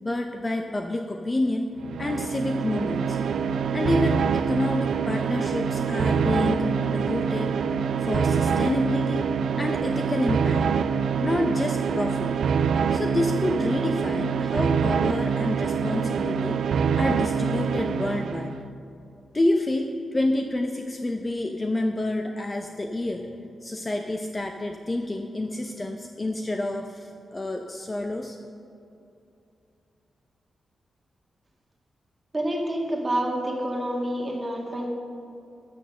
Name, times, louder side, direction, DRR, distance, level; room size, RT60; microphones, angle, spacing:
voice 1, 0.0-1.7 2.0-3.2 3.7-7.5 8.0-9.2 9.5-10.7 11.2-12.4 12.9-16.6 17.0-18.6 19.3-23.3 23.6-28.4, left 2 dB, 20° left, 4 dB, 0.5 m, -28 dB
sound 1, 1.8-18.6, right 6 dB, 80° right, 0.4 m, -25 dB
voice 2, 32.3-34.9, right 1 dB, 20° right, -1 dB, 1.8 m, -28 dB
12.5 x 6.9 x 6.6 m, 2.7 s
wide cardioid pair, 170°, 0 cm